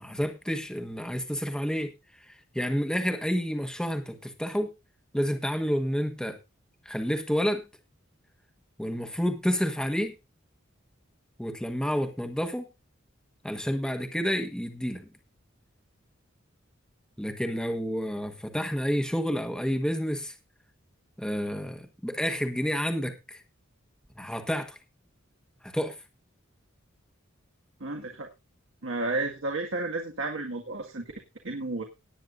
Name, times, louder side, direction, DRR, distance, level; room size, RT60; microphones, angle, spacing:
voice 1, 0.0-1.9 2.3-4.7 5.1-6.4 6.8-7.6 8.8-10.1 11.4-12.7 13.4-15.1 17.2-20.3 21.2-23.4 24.2-24.8 25.6-26.0, equal, 5° left, 1.3 m, -29 dB
voice 2, 27.8-28.3 28.8-31.1 31.4-31.8, right 2 dB, 70° right, 2.0 m, -32 dB
18.5 x 9.2 x 2.6 m
head